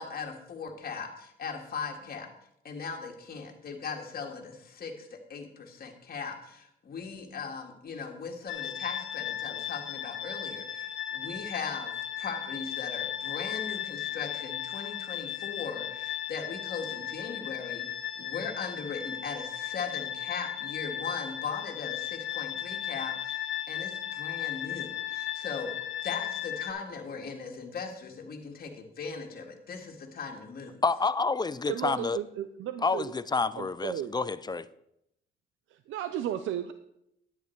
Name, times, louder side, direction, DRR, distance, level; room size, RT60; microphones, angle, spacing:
voice 1, 0.0-2.3 2.6-17.9 18.2-30.8, left 5 dB, 50° left, 1.9 m, -39 dB
sound 1, 8.5-26.7, left 11 dB, 75° left, 1.1 m, -36 dB
voice 2, 30.8-32.2 32.8-34.7, left 4 dB, 20° left, 0.4 m, -28 dB
voice 3, 31.7-33.1 33.6-34.1 35.7-36.7, right 11 dB, 85° right, 0.6 m, -34 dB
11.0 x 9.2 x 4.6 m
cardioid pair, 90°, 20 cm